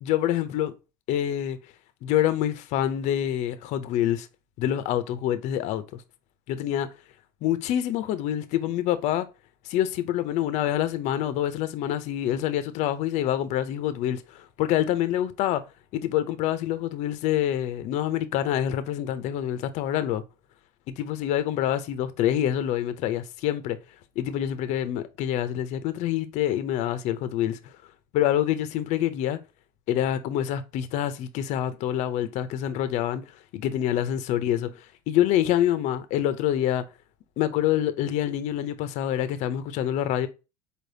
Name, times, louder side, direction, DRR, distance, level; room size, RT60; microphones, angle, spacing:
voice 1, 0.0-0.7 1.1-1.6 2.0-4.3 4.6-5.8 6.5-6.9 7.4-9.3 9.7-15.6 15.9-20.2 20.9-23.8 24.2-27.6 28.1-29.4 29.9-33.2 33.5-34.7 35.1-36.8 37.4-40.3, left 11 dB, 45° left, 0.5 m, -26 dB
4.3 x 3.3 x 2.6 m
cardioid pair, 155°, 16 cm